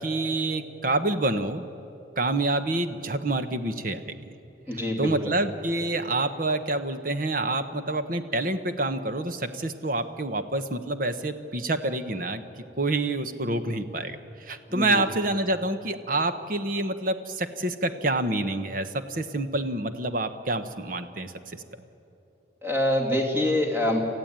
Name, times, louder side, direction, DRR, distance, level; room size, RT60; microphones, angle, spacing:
voice 1, 0.0-1.7 2.2-4.1 5.0-12.4 12.8-14.2 14.5-21.3, right 2 dB, 50° right, 9 dB, 1.2 m, -27 dB
voice 2, 4.7-5.3 14.7-15.0 22.6-24.0, left 1 dB, 10° right, 0 dB, 2.9 m, -25 dB
28.0 x 15.0 x 8.9 m, 2.8 s
head